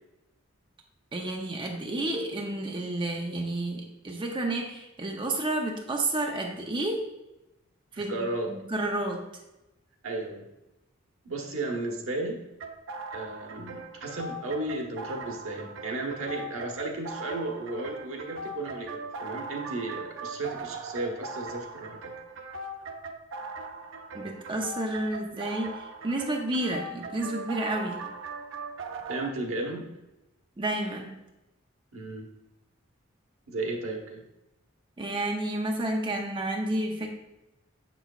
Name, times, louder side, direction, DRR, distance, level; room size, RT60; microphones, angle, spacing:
voice 1, 1.1-7.0 7.9-9.2 24.1-28.0 30.6-31.2 35.0-37.1, right 1 dB, 25° right, 1 dB, 0.6 m, -31 dB
voice 2, 7.9-8.6 10.0-10.4 11.2-12.4 13.1-22.0 29.1-29.9 31.9-32.3 33.5-34.2, right 2 dB, 80° right, 1 dB, 1.1 m, -34 dB
sound 1, 12.6-29.3, right 3 dB, 65° right, 0.5 m, -40 dB
6.8 x 6.0 x 2.4 m, 0.97 s
head